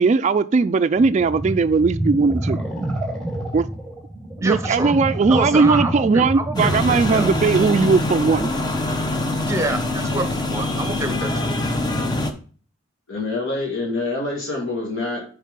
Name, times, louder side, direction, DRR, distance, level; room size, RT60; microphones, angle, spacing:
voice 1, 0.0-2.6 3.5-3.7 4.4-8.5, right 4 dB, 35° right, 0.3 m, -18 dB
sound 1, 1.0-8.1, right 1 dB, 5° left, 1.5 m, -28 dB
voice 2, 4.4-4.9 5.3-7.3 9.5-11.5, right 2 dB, 15° right, 0.8 m, -27 dB
sound 2, 6.5-12.3, left 1 dB, 20° left, 0.9 m, -24 dB
voice 3, 13.1-15.2, left 2 dB, 80° left, 2.0 m, -26 dB
6.5 x 4.6 x 5.2 m
head